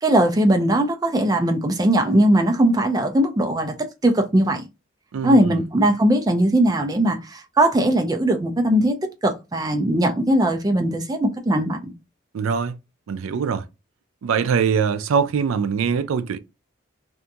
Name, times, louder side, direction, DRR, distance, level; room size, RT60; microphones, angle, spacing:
voice 1, 0.0-4.7 5.2-9.0 9.2-11.9, right 1 dB, 20° right, 0.4 m, -19 dB
voice 2, 5.1-5.6 12.3-12.8 13.1-13.7 14.2-16.4, right 6 dB, 80° right, 0.4 m, -22 dB
2.8 x 2.6 x 2.3 m
head